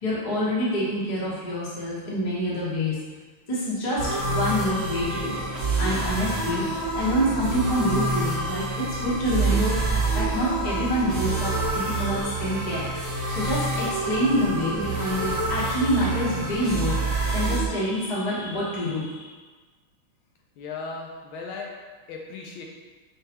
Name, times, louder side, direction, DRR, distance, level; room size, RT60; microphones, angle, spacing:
voice 1, 0.0-3.0 3.5-5.4 5.8-6.7 6.9-9.8 10.1-12.9 13.3-17.0 17.3-19.3, equal, 30° left, -8 dB, 0.7 m, -26 dB
sound 1, 4.0-17.7, right 2 dB, 25° right, 0.9 m, -27 dB
voice 2, 20.6-21.7 22.1-22.6, left 4 dB, 75° left, -1 dB, 1.3 m, -36 dB
6.4 x 2.2 x 3.0 m, 1.4 s
omnidirectional pair, 2.4 m